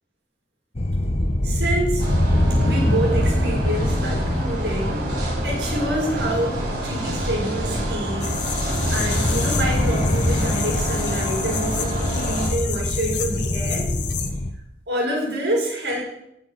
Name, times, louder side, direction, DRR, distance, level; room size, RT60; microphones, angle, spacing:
sound 1, 0.7-14.5, left 1 dB, 35° left, 0.9 m, -25 dB
voice 1, 1.4-2.0 2.6-5.1 5.4-13.9 14.9-16.0, right 1 dB, 80° right, -2 dB, 5.3 m, -27 dB
sound 2, 2.0-12.5, right 1 dB, 55° right, 5.6 m, -28 dB
sound 3, 8.2-14.3, left 9 dB, 85° left, 1.5 m, -31 dB
19.0 x 7.2 x 5.8 m, 0.80 s
head